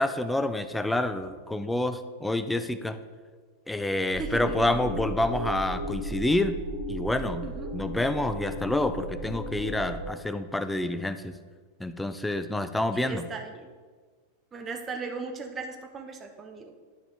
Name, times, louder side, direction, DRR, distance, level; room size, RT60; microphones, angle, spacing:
voice 1, 0.0-3.0 3.7-6.6 6.9-7.5 7.7-11.3 11.8-13.3, left 1 dB, 5° left, 11 dB, 0.5 m, -28 dB
sound 1, 4.1-10.1, right 1 dB, 65° left, 2.5 m, -35 dB
voice 2, 4.2-5.1 7.4-7.7 12.9-13.7 14.5-16.7, right 4 dB, 20° right, 5 dB, 0.9 m, -37 dB
12.0 x 4.9 x 3.7 m, 1.5 s
figure-of-eight pair, 90°, 0 cm